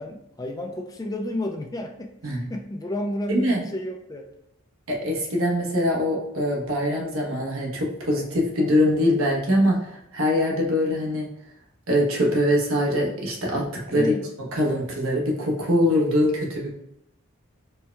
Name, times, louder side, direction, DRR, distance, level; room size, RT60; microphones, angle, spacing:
voice 1, 0.0-4.3 13.9-14.3, left 1 dB, 15° left, 3 dB, 0.3 m, -31 dB
voice 2, 3.3-3.6 4.9-11.3 11.9-14.1 14.6-16.7, left 1 dB, 75° right, -1 dB, 1.0 m, -23 dB
4.5 x 2.2 x 3.2 m, 0.81 s
head